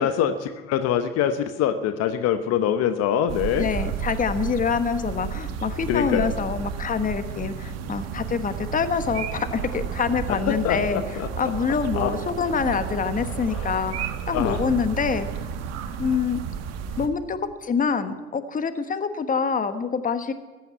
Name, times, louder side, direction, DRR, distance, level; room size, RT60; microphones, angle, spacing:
voice 1, 0.0-3.7 5.9-6.3 10.3-11.5 11.9-12.1 13.5-13.8 14.3-14.7, left 9 dB, 55° left, 9 dB, 1.0 m, -24 dB
sound 1, 3.3-17.1, right 7 dB, 55° right, 1.6 m, -32 dB
voice 2, 3.6-11.0 11.4-15.3 16.0-16.4 17.0-20.3, left 6 dB, 25° left, 10 dB, 1.3 m, -26 dB
14.5 x 9.2 x 9.3 m, 1.3 s
hypercardioid pair, 80°, 30 cm